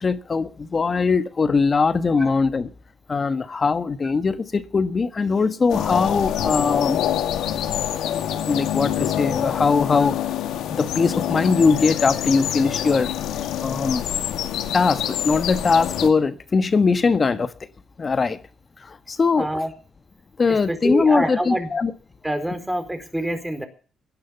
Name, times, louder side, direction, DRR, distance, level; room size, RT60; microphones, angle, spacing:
voice 1, 0.0-2.7 3.1-7.0 8.5-10.2 10.8-13.1 13.6-14.1 14.7-17.5 18.0-18.4 18.8-19.5 20.4-21.9, left 4 dB, 35° left, 1.4 m, -21 dB
sound 1, 5.7-16.1, left 11 dB, 85° left, 2.2 m, -26 dB
voice 2, 19.4-19.7 20.5-21.7 22.2-23.6, right 1 dB, 5° right, 4.4 m, -26 dB
17.0 x 11.5 x 7.1 m
cardioid pair, 90°, 0 cm